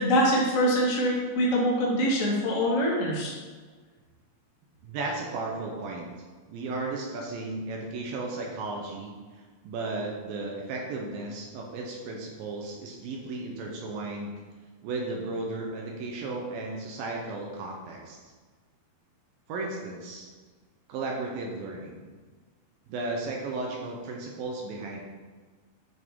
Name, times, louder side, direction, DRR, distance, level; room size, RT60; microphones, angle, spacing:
voice 1, 0.0-3.3, equal, 50° left, -4 dB, 0.9 m, -24 dB
voice 2, 4.8-6.1 6.5-9.1 9.6-14.3 14.8-18.2 19.5-20.3 20.9-22.1 22.9-25.0, right 3 dB, 80° right, -1 dB, 2.6 m, -34 dB
9.3 x 5.7 x 3.7 m, 1.4 s
omnidirectional pair, 4.3 m